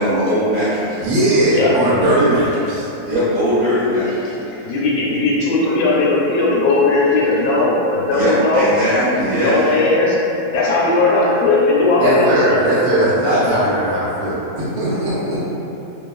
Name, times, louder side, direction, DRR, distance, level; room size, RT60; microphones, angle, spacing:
voice 1, 0.0-1.1 3.1-4.3 8.1-9.6 13.2-13.4, equal, 50° right, -12 dB, 1.1 m, -19 dB
voice 2, 1.0-2.9 12.0-15.4, right 1 dB, 75° right, -9 dB, 1.1 m, -18 dB
voice 3, 1.5-1.9 4.5-10.2 10.5-12.6, left 2 dB, 75° left, -5 dB, 1.0 m, -17 dB
2.9 x 2.3 x 2.3 m, 2.9 s
omnidirectional pair, 1.6 m